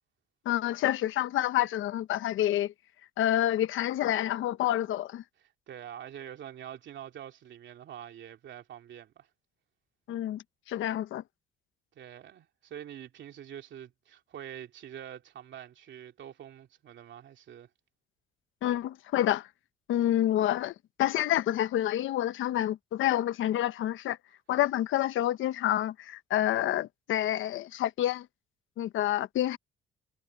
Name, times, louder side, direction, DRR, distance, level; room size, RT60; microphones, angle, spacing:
voice 1, 0.4-2.7 3.2-5.2 10.1-11.2 18.6-19.5 19.9-24.2 24.5-28.3 28.8-29.6, left 12 dB, 80° left, 1.1 m, -28 dB
voice 2, 5.4-9.3 11.9-17.7, right 10 dB, 70° right, 2.8 m, -45 dB
cardioid pair, 90°, 20 cm